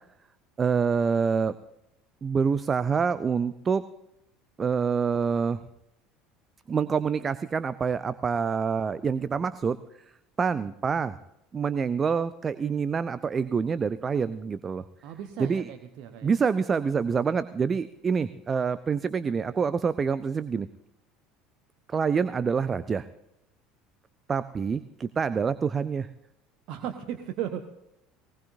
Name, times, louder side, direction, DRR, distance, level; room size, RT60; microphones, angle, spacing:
voice 1, 0.6-1.5 2.2-3.8 4.6-5.6 6.7-9.8 10.4-11.2 11.5-14.8 15.4-15.7 16.2-20.7 21.9-23.0 24.3-26.1, right 6 dB, 25° right, 14 dB, 0.6 m, -26 dB
voice 2, 15.0-16.3 26.7-27.7, right 10 dB, 50° right, 7 dB, 1.1 m, -36 dB
20.0 x 19.0 x 2.7 m, 0.83 s
figure-of-eight pair, 65°, 0 cm